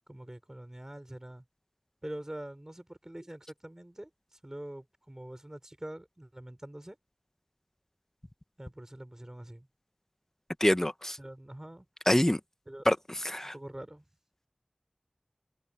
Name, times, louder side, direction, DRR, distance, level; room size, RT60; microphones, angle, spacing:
voice 1, 0.1-1.4 2.0-7.0 8.6-9.7 11.2-11.8 12.7-12.8 13.4-14.1, right 1 dB, 25° right, 4.9 m, -44 dB
voice 2, 10.6-11.2 12.1-12.4 12.8-12.9 13.2-13.5, left 1 dB, 20° left, 1.4 m, -25 dB
wide cardioid pair, 50°, 2 cm